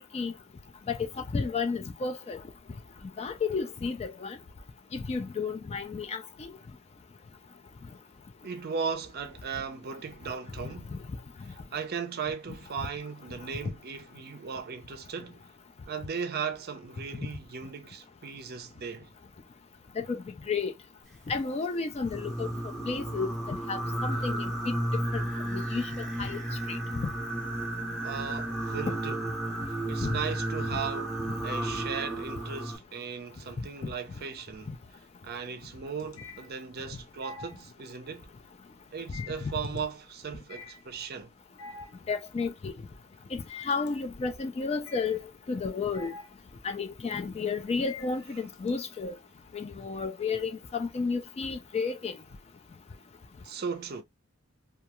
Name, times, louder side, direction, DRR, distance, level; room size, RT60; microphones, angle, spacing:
voice 1, 0.9-2.4 3.2-4.4 4.9-6.5 10.9-11.0 12.8-12.9 20.0-20.7 21.3-22.5 22.9-24.7 25.1-25.2 25.5-25.9 26.2-26.4 26.7-27.1 30.0-30.2 30.7-30.8 33.6-33.7 39.4-39.5 42.1-42.7 43.3-45.2 45.5-46.1 46.6-49.1 49.5-52.2, left 4 dB, 30° left, 0.3 m, -32 dB
voice 2, 8.4-11.0 11.4-15.5 15.9-19.1 28.0-29.2 29.7-31.2 31.4-34.7 35.2-38.3 38.9-41.3 53.4-54.0, right 6 dB, 50° right, 0.5 m, -37 dB
Singing, 22.1-32.8, right 1 dB, ahead, 0.7 m, -33 dB
sound 1, 33.2-33.8 34.2-48.7, left 4 dB, 75° left, 0.6 m, -48 dB
2.3 x 2.3 x 2.8 m
head